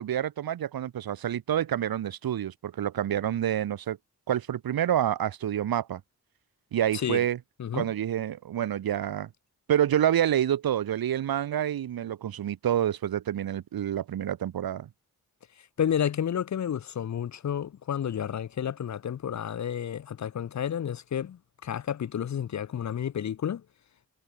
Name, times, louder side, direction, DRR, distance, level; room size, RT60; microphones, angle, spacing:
voice 1, 0.0-4.0 4.3-6.0 6.7-7.4 7.7-9.3 9.7-14.9, right 10 dB, 80° right, 0.6 m, -28 dB
voice 2, 6.9-7.2 7.6-7.9 15.6-23.6, left 9 dB, 50° left, 0.5 m, -31 dB
cardioid pair, 60°, 36 cm